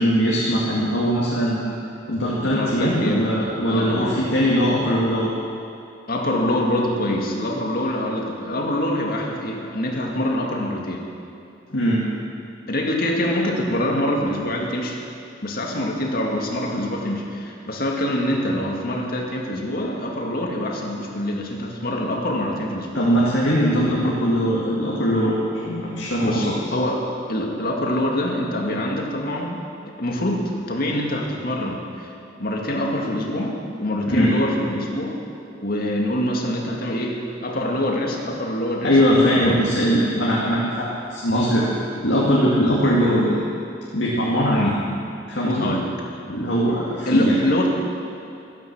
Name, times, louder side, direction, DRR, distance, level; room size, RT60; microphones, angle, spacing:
voice 1, 0.0-1.8 2.1-5.3 11.7-12.1 22.9-25.3 25.6-26.5 34.0-34.3 38.8-41.6 42.0-43.4 43.9-44.6 45.3-45.7 46.3-47.4, equal, 70° left, -6 dB, 2.4 m, -20 dB
voice 2, 2.4-3.3 3.7-4.2 6.1-11.1 12.7-15.0 15.4-23.0 26.2-29.6 30.0-32.1 32.4-35.2 35.6-40.2 44.5-44.8 45.6-45.9 47.1-47.7, left 1 dB, 55° left, 0 dB, 2.2 m, -25 dB
14.5 x 13.5 x 6.2 m, 2.7 s
head